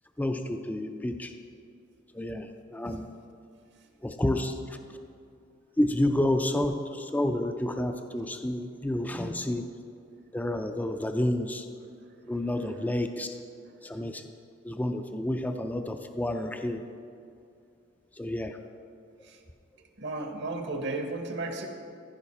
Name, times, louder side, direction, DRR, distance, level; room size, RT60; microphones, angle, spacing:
voice 1, 0.2-1.3 2.1-3.0 4.0-5.0 5.8-9.7 10.3-11.7 12.2-13.4 13.8-14.3 14.6-16.9 18.1-18.6, left 1 dB, 10° left, 6 dB, 0.3 m, -30 dB
voice 2, 20.0-21.7, right 2 dB, 60° right, 4 dB, 1.0 m, -34 dB
15.0 x 5.2 x 4.2 m, 2.5 s
head